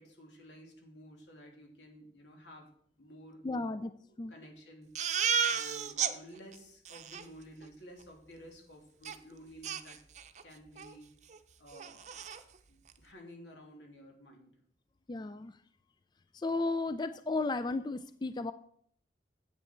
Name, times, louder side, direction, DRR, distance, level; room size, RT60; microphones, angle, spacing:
voice 1, 0.0-2.7 3.0-3.8 4.1-10.0 10.4-11.1 11.6-12.3 12.7-14.5, equal, 90° left, 1 dB, 2.8 m, -53 dB
voice 2, 3.4-3.9 4.2-4.4 15.1-15.6 16.3-18.5, left 3 dB, 25° left, 12 dB, 0.3 m, -34 dB
Crying sobbing, 5.0-6.1 6.5-6.6 6.9-7.2 9.1-9.2 9.6-10.4 10.8-10.9 11.3-11.4 11.7-12.4, right 7 dB, 40° right, 0.7 m, -33 dB
9.6 x 8.3 x 4.4 m, 0.65 s
head